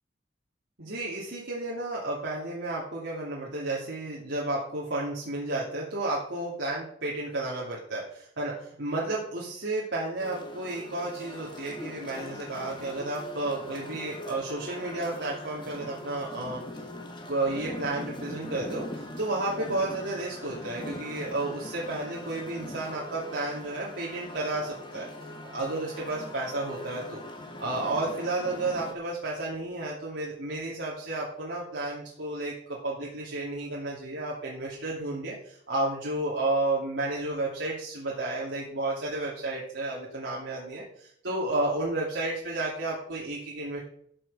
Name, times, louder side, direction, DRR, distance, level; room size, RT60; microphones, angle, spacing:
voice 1, 0.8-16.6 17.3-25.1 25.4-27.2 27.6-40.8 41.2-43.8, right 2 dB, 85° right, -6 dB, 2.7 m, -32 dB
sound 1, 10.2-28.9, left 1 dB, 25° left, 1.5 m, -41 dB
14.0 x 6.5 x 4.9 m, 0.66 s
head